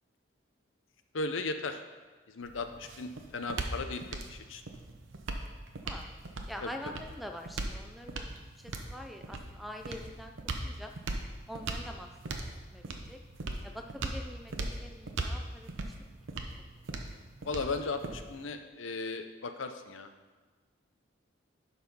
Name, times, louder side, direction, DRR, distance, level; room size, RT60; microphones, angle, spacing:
voice 1, 1.1-1.8 2.3-4.0 4.3-4.6 6.6-6.7 17.4-20.1, left 3 dB, 80° left, 7 dB, 0.7 m, -36 dB
sound 1, 2.4-18.5, right 2 dB, 80° right, 0.8 m, -39 dB
voice 2, 6.5-8.3 8.6-10.3 10.6-10.9 11.5-12.1 12.7-13.2 13.6-15.7, equal, ahead, 4 dB, 0.4 m, -44 dB
11.0 x 4.2 x 5.5 m, 1.3 s
head